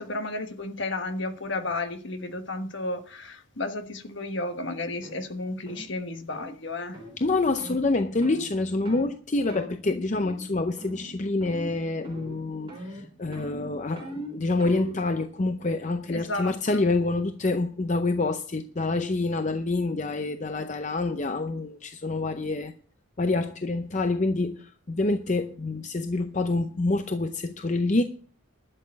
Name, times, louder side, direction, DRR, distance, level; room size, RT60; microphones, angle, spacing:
voice 1, 0.0-7.0 16.1-16.8, left 2 dB, 60° left, 1.3 m, -33 dB
sound 1, 5.0-5.2 5.7-5.9 6.3-6.5 6.9-7.1 7.6-7.8 8.2-8.5 8.9-9.1 9.5-9.7 10.1-10.5 10.8-11.1 11.4-11.8 12.0-12.4 12.7-15.0, right 1 dB, 25° right, 4.5 m, -40 dB
voice 2, 7.2-22.7 23.2-28.0, left 2 dB, 35° left, 0.6 m, -27 dB
12.0 x 6.7 x 7.4 m
head